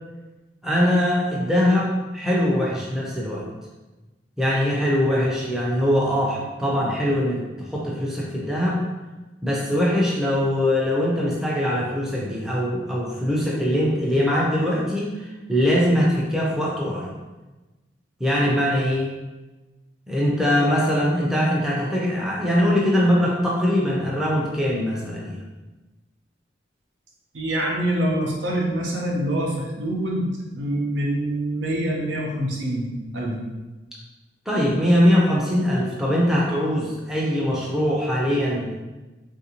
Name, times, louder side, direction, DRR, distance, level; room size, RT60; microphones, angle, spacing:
voice 1, 0.6-3.4 4.4-8.8 9.4-17.1 18.2-19.1 20.1-25.4 34.5-38.7, equal, 5° right, -5 dB, 0.4 m, -22 dB
voice 2, 27.3-30.3 30.5-33.4, right 1 dB, 85° right, -2 dB, 0.7 m, -25 dB
3.4 x 2.6 x 2.9 m, 1.1 s
head